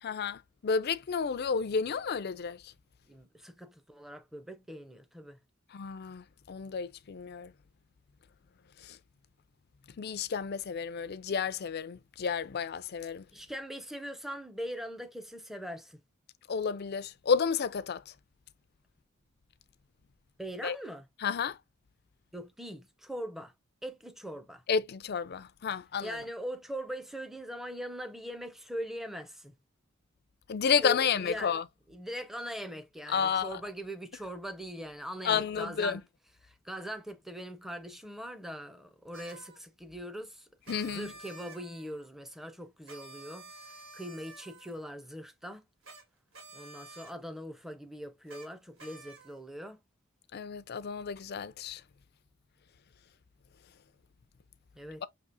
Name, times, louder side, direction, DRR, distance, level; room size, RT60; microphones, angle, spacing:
voice 1, 0.0-2.7 5.7-7.5 8.8-9.0 10.0-13.2 16.5-18.0 20.6-20.8 21.2-21.6 24.7-26.2 30.5-31.6 33.1-33.6 35.2-36.0 40.7-41.1 50.3-51.8 55.0-55.1, left 6 dB, 50° left, 0.4 m, -31 dB
voice 2, 3.1-5.4 13.3-16.0 20.4-21.1 22.3-23.5 23.8-24.6 26.0-29.5 30.8-31.6 31.9-36.0 36.4-40.5 40.8-43.5 43.9-45.6 46.5-49.8 54.8-55.0, equal, ahead, 0.6 m, -41 dB
sound 1, 39.1-39.6 40.6-42.1 42.9-44.9 45.8-46.0 46.3-47.1 48.3-48.5 48.8-49.4, right 3 dB, 70° right, 1.7 m, -50 dB
6.0 x 2.9 x 2.5 m
head